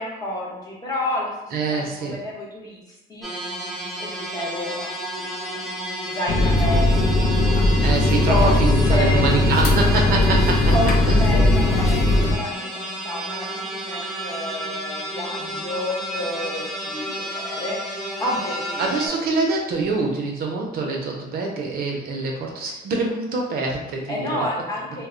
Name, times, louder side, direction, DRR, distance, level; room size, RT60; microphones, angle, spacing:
voice 1, 0.0-3.3 4.0-4.9 5.2-5.6 6.1-7.4 8.1-8.6 8.9-9.9 10.7-17.8 18.2-19.1 24.1-25.1, left 1 dB, 20° left, -4 dB, 0.9 m, -30 dB
voice 2, 1.5-2.2 7.8-10.7 11.1-11.2 18.8-24.5, right 3 dB, 65° right, 0 dB, 0.6 m, -25 dB
sound 1, 3.2-19.1, right 1 dB, ahead, 0.5 m, -31 dB
sound 2, 6.3-12.4, left 2 dB, 60° left, 0.5 m, -18 dB
2.1 x 2.1 x 3.6 m, 0.99 s
cardioid pair, 110°, 17 cm